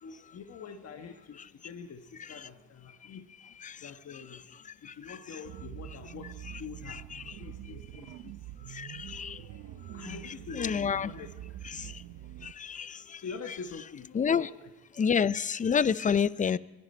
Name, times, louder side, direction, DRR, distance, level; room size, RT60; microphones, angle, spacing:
voice 1, 0.0-3.3 3.7-12.3 12.8-14.7, left 6 dB, 55° left, 1.2 m, -46 dB
sound 1, 5.5-12.5, right 13 dB, 85° right, 0.7 m, -45 dB
voice 2, 6.9-7.2 8.8-9.3 10.5-11.1 12.6-12.9 14.1-14.5 15.0-16.6, left 7 dB, 25° left, 0.4 m, -28 dB
24.5 x 11.0 x 4.3 m
cardioid pair, 90°, 30 cm